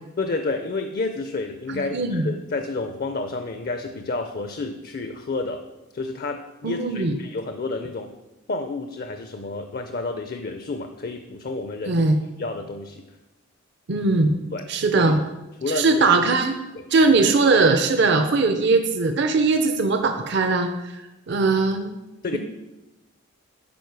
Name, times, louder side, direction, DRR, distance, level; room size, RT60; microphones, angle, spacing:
voice 1, 0.2-5.6 5.9-8.1 8.5-12.1 12.4-13.0 14.5-14.7 14.9-15.1 15.6-16.0 16.7-16.9 22.2-22.4, left 3 dB, 45° left, 7 dB, 0.5 m, -30 dB
voice 2, 1.7-2.3 6.6-7.1 11.9-12.2 13.9-14.3 14.7-15.2 15.7-16.5 16.9-20.7 21.3-21.9, right 3 dB, 55° right, 6 dB, 0.5 m, -20 dB
11.0 x 4.9 x 4.7 m, 1.0 s
head